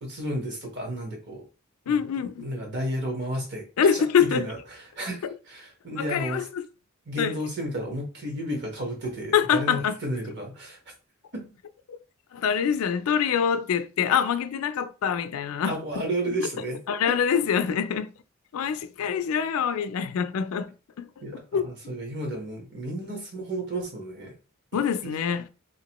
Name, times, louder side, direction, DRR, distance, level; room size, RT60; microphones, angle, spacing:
voice 1, 0.0-1.4 1.8-6.4 7.1-10.8 11.3-11.4 15.6-16.8 17.1-17.2 21.2-24.3 25.0-25.1, right 1 dB, 55° right, 1.2 m, -32 dB
voice 2, 1.9-2.5 3.8-4.5 5.2-5.3 6.0-6.6 7.2-7.4 9.3-10.0 11.9-12.0 12.3-16.0 16.9-18.1 18.5-21.1 21.3-21.7 24.7-25.5, left 7 dB, 75° left, 0.4 m, -25 dB
3.4 x 2.9 x 2.9 m
head